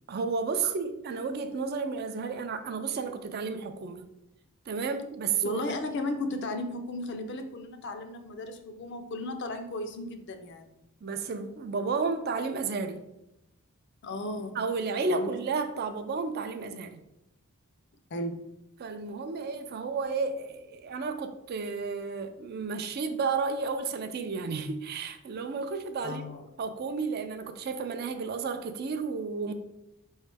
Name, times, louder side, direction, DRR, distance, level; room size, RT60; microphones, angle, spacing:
voice 1, 0.1-4.0 4.7-5.7 11.0-13.0 14.5-17.0 18.8-26.2 26.6-29.5, right 4 dB, 45° right, 0.3 m, -32 dB
voice 2, 5.4-10.7 14.0-14.6 15.1-15.3 18.1-18.4 26.0-26.5, left 2 dB, 50° left, 0.5 m, -35 dB
4.7 x 3.1 x 3.4 m
head